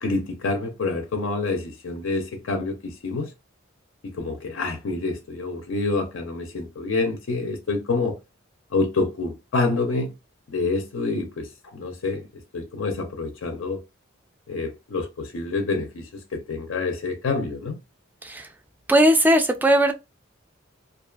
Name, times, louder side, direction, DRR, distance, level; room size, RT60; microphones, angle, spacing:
voice 1, 0.0-3.3 4.1-8.2 8.7-10.1 10.5-12.2 12.5-13.8 14.5-17.8, left 3 dB, 70° left, 0.5 m, -27 dB
voice 2, 18.9-19.9, right 1 dB, 10° right, 0.3 m, -18 dB
2.4 x 2.3 x 2.3 m
head